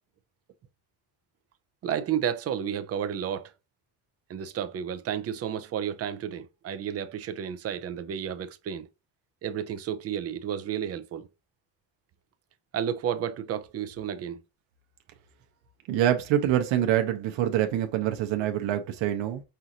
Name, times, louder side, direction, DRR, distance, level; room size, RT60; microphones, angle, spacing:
voice 1, 1.8-3.5 4.3-8.9 9.4-11.3 12.7-14.4, right 9 dB, 35° right, 0.5 m, -32 dB
voice 2, 15.9-19.4, right 11 dB, 80° right, 0.9 m, -25 dB
5.5 x 2.5 x 2.8 m
cardioid pair, 150°, 45 cm